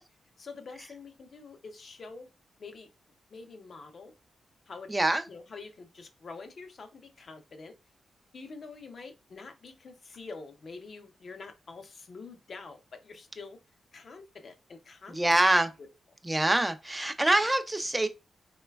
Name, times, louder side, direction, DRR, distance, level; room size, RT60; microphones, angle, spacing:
voice 1, 0.4-2.3 2.6-2.9 3.3-4.1 4.7-4.9 5.3-7.7 8.3-13.6 13.9-15.4, left 4 dB, 60° left, 0.5 m, -46 dB
voice 2, 4.9-5.2 15.1-15.7 16.3-18.1, right 1 dB, 15° right, 0.3 m, -25 dB
3.1 x 2.1 x 2.2 m
cardioid pair, 65°, 0 cm